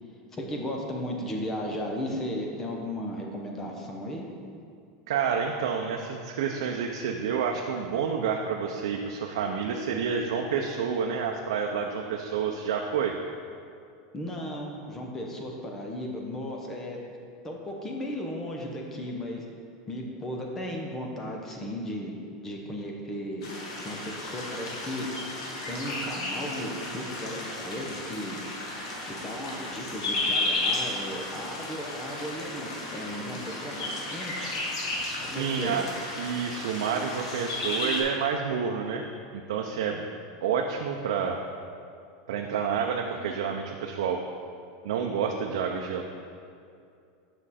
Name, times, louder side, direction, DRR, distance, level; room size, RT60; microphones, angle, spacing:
voice 1, 0.3-4.2 14.1-17.0 17.4-19.4 19.9-22.1 22.4-23.5 23.8-25.2 25.7-28.4 29.1-34.6 35.3-35.8 43.1-43.3, equal, 15° left, 0 dB, 0.7 m, -35 dB
voice 2, 5.1-13.1 35.2-35.8 36.2-40.0 40.4-41.4 42.3-44.2 44.8-46.0, right 6 dB, 80° right, 2 dB, 0.5 m, -29 dB
sound 1, 23.4-38.0, left 2 dB, 90° left, 1.6 m, -33 dB
7.6 x 6.1 x 4.2 m, 2.4 s
supercardioid pair, 175°, 3 cm